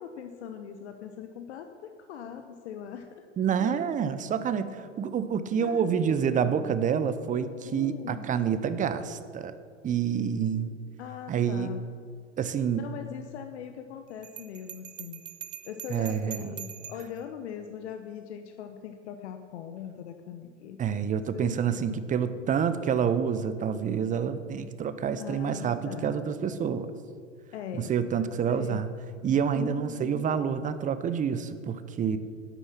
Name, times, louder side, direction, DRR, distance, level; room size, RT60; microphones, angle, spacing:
voice 1, 0.0-3.3 3.6-3.8 5.6-6.7 7.6-8.2 11.0-11.9 12.7-15.2 15.6-21.0 21.3-21.8 25.2-26.2 27.5-27.9 28.2-28.8 29.5-30.3, left 8 dB, 65° left, 6 dB, 1.0 m, -41 dB
voice 2, 3.4-9.6 9.8-10.7 11.3-11.7 12.4-12.9 15.9-16.5 20.8-26.9 27.8-28.9 29.2-32.2, right 7 dB, 20° right, 12 dB, 0.8 m, -28 dB
Bell, 14.2-17.2, right 9 dB, 80° right, 0.9 m, -43 dB
11.0 x 10.0 x 6.1 m, 2.1 s
hypercardioid pair, 90°, 36 cm